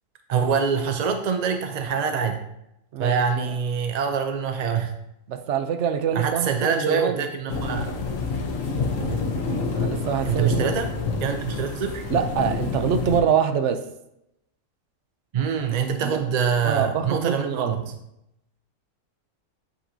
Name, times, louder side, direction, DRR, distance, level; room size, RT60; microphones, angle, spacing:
voice 1, 0.3-2.5 3.0-4.9 6.1-7.9 10.2-10.9 11.2-12.0 15.3-17.9, right 6 dB, 50° right, 6 dB, 0.5 m, -25 dB
voice 2, 5.3-7.2 9.8-10.5 12.1-13.8 16.0-16.2 16.6-17.8, right 8 dB, 70° right, 7 dB, 0.9 m, -24 dB
sound 1, 7.5-13.2, left 4 dB, 80° left, 1.3 m, -28 dB
8.1 x 5.8 x 2.7 m, 0.82 s
omnidirectional pair, 1.3 m